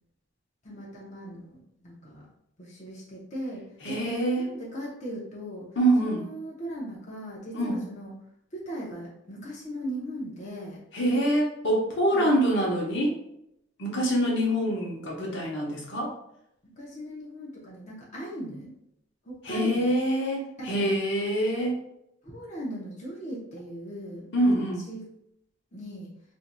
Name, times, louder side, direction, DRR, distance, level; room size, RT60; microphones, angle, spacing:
voice 1, 0.6-2.3 2.6-4.0 4.4-5.7 6.0-8.1 8.5-10.8 12.1-12.3 16.6-18.7 19.2-20.0 20.6-20.9 22.2-24.5 24.9-25.0 25.7-26.1, equal, 35° left, -5 dB, 0.8 m, -38 dB
voice 2, 3.8-4.5 5.8-6.2 7.5-7.8 10.9-13.2 13.8-16.1 19.4-21.8 24.3-24.8, right 1 dB, 65° left, -1 dB, 0.9 m, -25 dB
4.4 x 2.6 x 2.2 m, 0.78 s
head